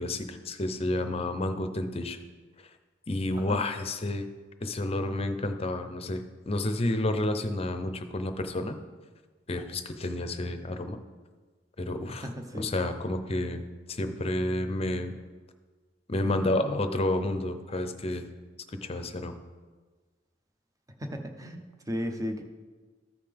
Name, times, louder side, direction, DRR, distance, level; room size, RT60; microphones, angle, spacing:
voice 1, 0.0-2.2 3.1-4.3 4.6-8.8 9.5-11.0 11.8-12.3 12.5-13.6 13.9-15.2 16.1-18.3 18.8-19.3, left 1 dB, 35° left, 8 dB, 0.6 m, -30 dB
voice 2, 12.1-12.7 21.0-21.6 21.9-22.4, equal, 20° right, 5 dB, 0.8 m, -35 dB
14.0 x 5.6 x 3.5 m, 1.4 s
head